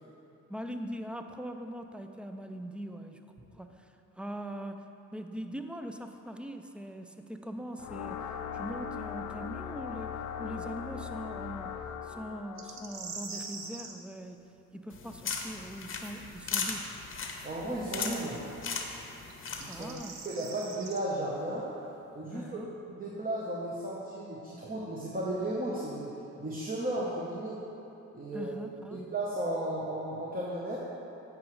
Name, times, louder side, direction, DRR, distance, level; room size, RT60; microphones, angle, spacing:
voice 1, 0.5-3.2 3.5-4.8 5.1-8.3 8.5-11.8 12.0-16.9 19.7-20.2 22.3-22.7 28.3-29.0, equal, 5° right, 6 dB, 0.4 m, -41 dB
sound 1, 7.8-13.8, left 7 dB, 75° left, 0.5 m, -40 dB
sound 2, 12.6-13.9 17.1-17.2 19.3-21.0, right 4 dB, 60° right, 0.8 m, -43 dB
sound 3, 14.9-20.0, left 5 dB, 40° left, 0.8 m, -37 dB
voice 2, 17.4-18.4 19.6-19.9 20.2-21.7 22.1-22.6 23.0-27.6 28.1-28.6 28.9-30.8, right 1 dB, 30° right, -6 dB, 1.0 m, -34 dB
9.1 x 4.9 x 3.1 m, 3.0 s
cardioid pair, 70°, 31 cm